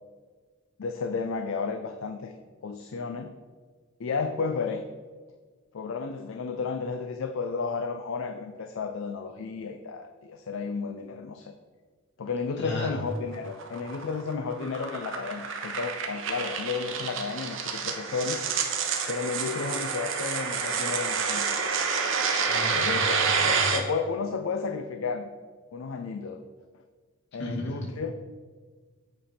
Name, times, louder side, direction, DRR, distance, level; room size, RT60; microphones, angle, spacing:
voice 1, 0.8-2.3 2.6-3.4 4.0-4.8 5.7-11.5 12.2-18.5 19.1-21.7 22.8-25.3 25.7-26.4 27.3-28.1, left 5 dB, 70° left, 6 dB, 0.4 m, -32 dB
voice 2, 12.6-13.0 22.5-23.8 27.4-27.9, equal, 55° left, -3 dB, 2.2 m, -34 dB
sound 1, 13.1-23.8, right 5 dB, 65° right, 0.9 m, -29 dB
8.0 x 5.1 x 4.3 m, 1.5 s
head